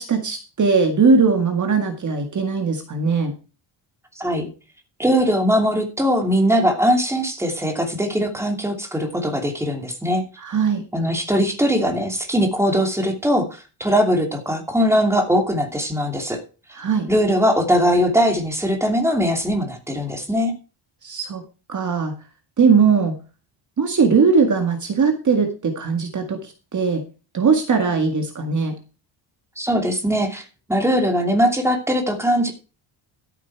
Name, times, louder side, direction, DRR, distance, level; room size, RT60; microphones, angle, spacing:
voice 1, 0.0-3.4 10.4-10.8 16.7-17.1 21.0-21.4 21.7-22.1 22.6-23.2 23.8-27.0 27.3-28.8, right 5 dB, 40° right, 5 dB, 1.9 m, -19 dB
voice 2, 4.2-4.5 5.0-10.2 10.9-16.4 17.1-20.5 29.6-30.4 30.7-32.5, equal, 5° right, 3 dB, 2.7 m, -20 dB
13.5 x 8.3 x 4.7 m, 0.33 s
cardioid pair, 155°, 48 cm